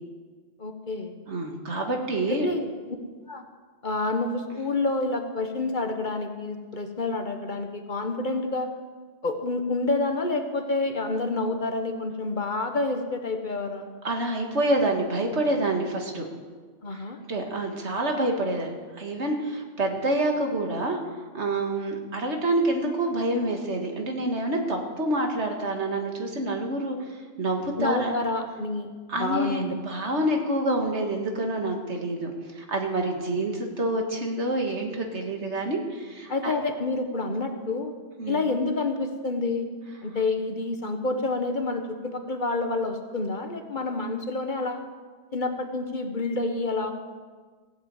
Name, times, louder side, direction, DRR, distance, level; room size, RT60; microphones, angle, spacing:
voice 1, 0.6-1.1 2.3-2.7 3.3-3.4 3.8-8.7 9.2-13.9 16.8-17.2 27.8-28.9 29.2-29.7 36.3-37.9 38.3-39.7 40.0-44.8 45.3-46.9, left 3 dB, 45° left, 5 dB, 1.2 m, -28 dB
voice 2, 1.3-2.5 14.0-16.3 17.3-21.0 21.3-27.0 27.4-28.1 29.1-36.5 38.2-38.4, right 1 dB, 70° right, 3 dB, 2.1 m, -27 dB
16.5 x 7.9 x 8.3 m, 1.5 s
omnidirectional pair, 1.2 m